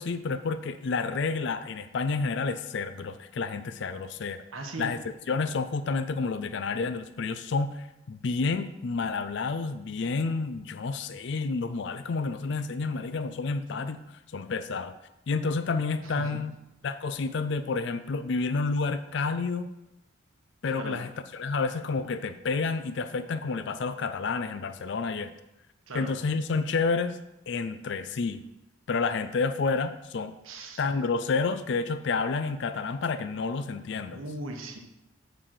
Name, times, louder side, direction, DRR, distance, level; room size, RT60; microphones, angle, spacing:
voice 1, 0.0-4.4 4.8-5.0 5.3-14.0 14.3-14.9 15.3-16.5 16.8-19.7 20.6-25.3 25.9-27.2 27.5-28.4 28.9-30.3 30.8-34.2, left 4 dB, 55° left, 11 dB, 0.4 m, -29 dB
voice 2, 4.5-4.9 16.0-16.3 20.8-21.0 25.9-26.1 30.4-30.8 34.1-34.8, right 2 dB, 80° right, 3 dB, 1.2 m, -38 dB
8.0 x 4.0 x 6.4 m, 0.91 s
head